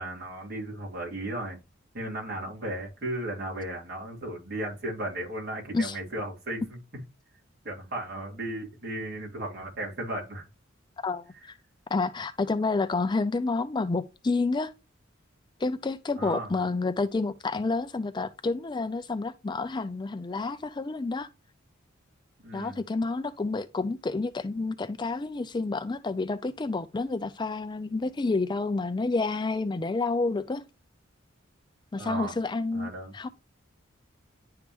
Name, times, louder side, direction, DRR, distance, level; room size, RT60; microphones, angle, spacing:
voice 1, 0.0-1.6 1.9-7.0 7.6-10.4 16.2-16.5 22.4-22.8 31.9-32.3 32.7-33.1, right 1 dB, 55° right, 3.0 m, -35 dB
voice 2, 11.0-11.5 11.9-14.7 15.6-21.3 22.5-30.7 31.9-33.3, left 3 dB, 25° left, 0.4 m, -29 dB
10.5 x 3.6 x 3.0 m
head